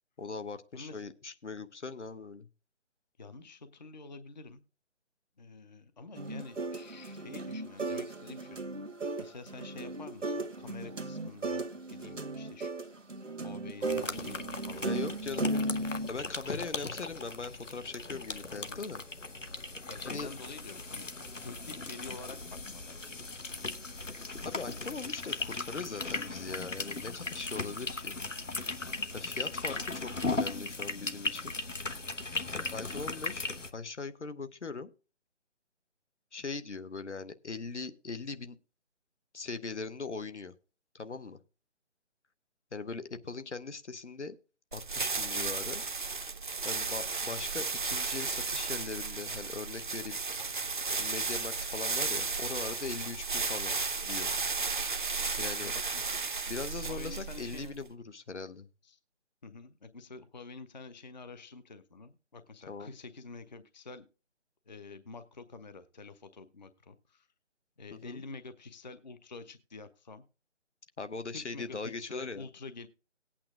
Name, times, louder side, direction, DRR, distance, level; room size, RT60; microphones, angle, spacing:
voice 1, 0.2-2.5 14.8-15.8 16.1-19.0 20.0-20.3 24.4-28.2 29.1-31.6 32.5-33.5 33.7-34.9 36.3-38.6 39.3-40.5 40.9-41.4 42.7-44.4 44.7-45.8 46.6-50.2 51.0-53.7 54.0-54.3 55.4-55.7 56.5-58.7 62.7-62.9 67.9-68.2 71.0-72.4, left 4 dB, 70° left, 10 dB, 1.0 m, -40 dB
voice 2, 0.7-1.1 3.2-4.6 5.4-8.6 9.2-12.7 13.4-14.8 16.7-16.9 18.5-18.8 19.9-21.1 21.4-23.2 32.8-33.3 55.3-56.3 56.8-57.7 58.8-59.0 59.4-64.0 64.7-67.3 67.8-70.2 71.3-72.9, left 3 dB, 35° left, 11 dB, 0.6 m, -48 dB
sound 1, 6.1-16.1, right 2 dB, 80° right, 1.1 m, -36 dB
sound 2, 13.8-33.7, left 3 dB, 90° left, 1.1 m, -38 dB
sound 3, 44.7-57.8, right 4 dB, 40° right, 0.6 m, -34 dB
18.5 x 8.7 x 2.4 m, 0.34 s
figure-of-eight pair, 150°, 36 cm